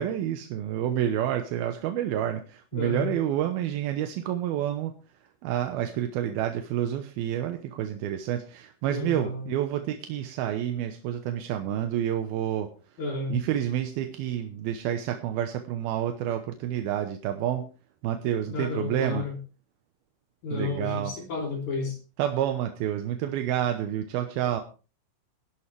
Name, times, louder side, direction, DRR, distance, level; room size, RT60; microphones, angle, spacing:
voice 1, 0.0-4.9 5.4-12.7 13.3-17.7 18.0-19.2 20.5-21.1 22.2-24.6, right 11 dB, 80° right, 7 dB, 2.8 m, -29 dB
voice 2, 2.7-3.1 8.9-9.5 13.0-13.4 18.5-19.4 20.4-22.0, left 4 dB, 50° left, 0 dB, 4.5 m, -32 dB
19.0 x 11.0 x 3.4 m, 0.34 s
omnidirectional pair, 4.4 m